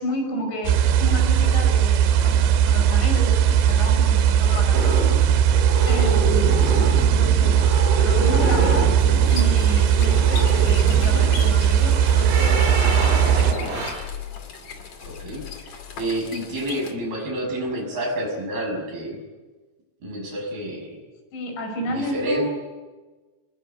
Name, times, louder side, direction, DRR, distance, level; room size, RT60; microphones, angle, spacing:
voice 1, 0.0-4.8 5.9-6.7 7.1-7.7 8.0-8.9 9.3-13.1 21.3-22.6, equal, 75° left, 4 dB, 7.5 m, -31 dB
sound 1, 0.6-13.5, right 9 dB, 80° right, 3.5 m, -18 dB
sound 2, 4.7-13.9, right 1 dB, 35° right, 7.2 m, -27 dB
sound 3, 9.0-16.9, left 6 dB, 45° left, 3.1 m, -38 dB
voice 2, 15.0-19.2 20.0-21.0 21.9-22.6, right 1 dB, 55° right, 2 dB, 8.0 m, -29 dB
26.5 x 21.5 x 9.2 m, 1.3 s
omnidirectional pair, 5.2 m